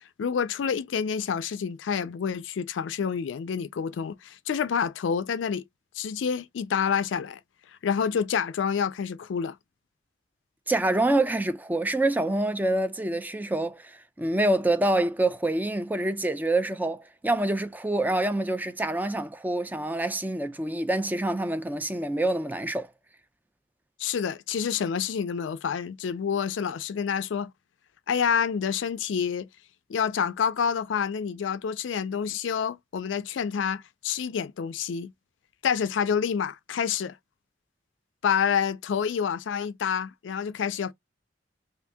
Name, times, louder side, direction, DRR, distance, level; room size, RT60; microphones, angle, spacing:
voice 1, 0.2-5.6 6.0-7.4 7.7-9.6 24.0-27.5 28.1-29.5 29.9-35.1 35.6-37.2 38.2-40.9, left 7 dB, 80° left, 0.4 m, -28 dB
voice 2, 10.7-22.9, right 1 dB, 10° right, 0.4 m, -26 dB
2.7 x 2.6 x 3.3 m
head